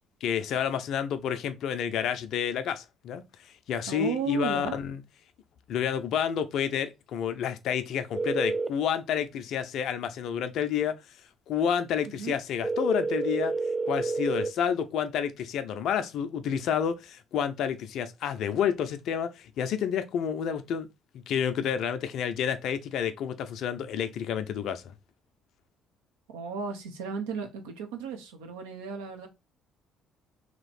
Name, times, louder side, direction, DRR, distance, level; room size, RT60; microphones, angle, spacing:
voice 1, 0.2-5.0 5.7-11.0 11.5-13.5 13.9-20.9 21.1-24.8, left 8 dB, 60° left, 0.5 m, -29 dB
voice 2, 3.9-4.8 12.1-12.4 26.3-29.3, right 6 dB, 75° right, 0.8 m, -35 dB
sound 1, 8.1-8.7 12.6-14.5, right 3 dB, 10° right, 0.4 m, -29 dB
3.0 x 3.0 x 4.1 m
hypercardioid pair, 50°, 0 cm